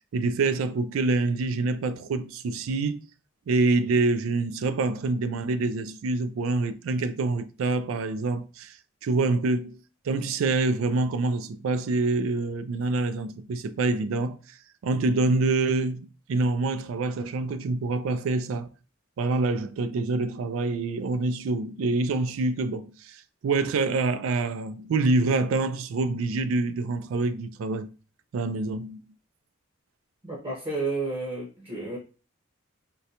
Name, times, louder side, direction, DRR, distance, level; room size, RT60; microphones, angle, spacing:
voice 1, 0.1-3.0 3.5-8.8 9.0-14.6 14.8-18.7 19.2-27.9 28.3-29.0, right 3 dB, 85° right, 0.3 m, -26 dB
voice 2, 30.2-32.0, right 3 dB, 25° right, 0.9 m, -31 dB
3.7 x 2.1 x 2.8 m
head